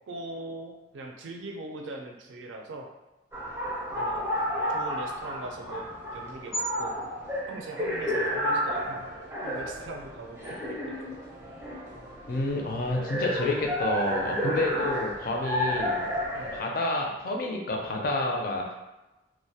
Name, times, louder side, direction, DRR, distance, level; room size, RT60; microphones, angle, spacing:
voice 1, 0.1-2.9 3.9-4.3 4.7-7.0 7.5-9.1 9.4-11.1 16.3-16.6, right 2 dB, 85° right, 2 dB, 0.4 m, -41 dB
sound 1, 3.3-16.6, equal, 15° right, 0.5 m, -31 dB
voice 2, 12.3-16.1 16.5-18.7, left 2 dB, 50° left, 0 dB, 0.4 m, -29 dB
2.3 x 2.0 x 2.7 m, 1.0 s
head